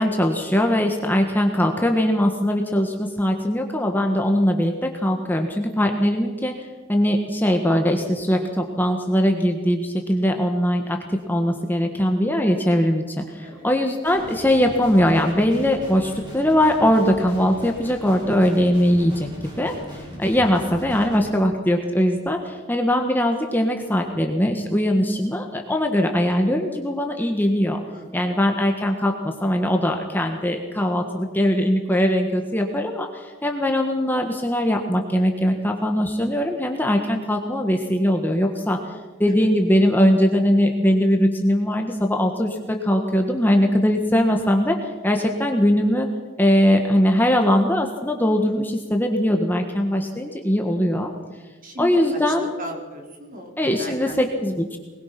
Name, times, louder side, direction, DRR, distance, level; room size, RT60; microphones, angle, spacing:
voice 1, 0.0-6.5 6.9-11.0 11.3-19.3 19.6-27.8 28.1-38.8 39.2-46.1 46.4-51.1 51.8-52.5 53.6-54.8, equal, 10° left, 3 dB, 1.5 m, -21 dB
Guitar, 14.0-21.2, equal, 20° right, 7.3 m, -40 dB
voice 2, 19.8-20.2 27.9-28.3 39.3-39.5 51.6-54.2, right 1 dB, 40° right, 1 dB, 4.3 m, -38 dB
23.0 x 20.5 x 6.0 m, 1.3 s
head